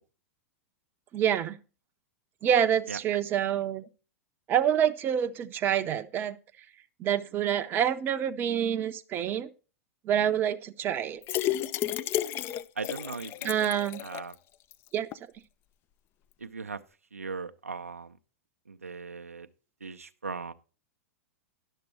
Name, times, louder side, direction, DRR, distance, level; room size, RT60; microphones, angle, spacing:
voice 1, 1.1-1.6 2.4-3.9 4.5-6.4 7.0-9.5 10.0-11.2 13.4-14.0 14.9-15.1, right 9 dB, 25° right, 0.6 m, -27 dB
sound 1, 11.2-14.3 14.7-14.8 15.1-15.2, left 12 dB, 30° left, 0.4 m, -32 dB
voice 2, 12.8-13.7 14.0-14.4 16.4-16.8 17.1-18.2 18.7-19.5 19.8-20.5, right 4 dB, 80° right, 0.5 m, -38 dB
11.0 x 6.7 x 4.3 m
figure-of-eight pair, 95°, 8 cm